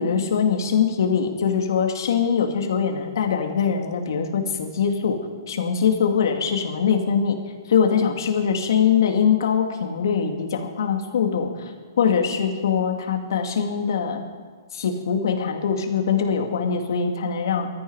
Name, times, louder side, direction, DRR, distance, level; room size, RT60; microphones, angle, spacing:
voice 1, 0.0-5.2 5.5-7.4 7.7-11.5 12.0-14.2 14.7-17.7, left 7 dB, 70° left, 4 dB, 2.4 m, -22 dB
20.5 x 14.0 x 4.9 m, 1.5 s
hypercardioid pair, 145°, 2 cm